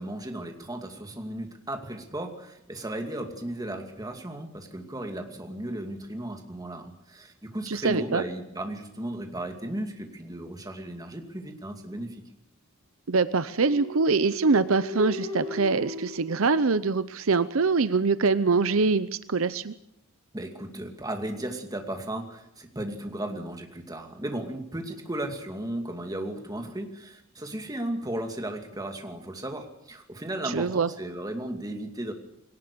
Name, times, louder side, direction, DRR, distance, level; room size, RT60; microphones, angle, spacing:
voice 1, 0.0-12.2 20.3-32.1, right 1 dB, 20° right, 4 dB, 2.5 m, -35 dB
voice 2, 7.7-8.2 13.1-19.7 30.4-30.9, right 4 dB, 75° right, 14 dB, 0.7 m, -24 dB
sound 1, 13.5-17.3, equal, 30° left, 5.2 m, -38 dB
21.0 x 18.5 x 6.9 m, 0.81 s
head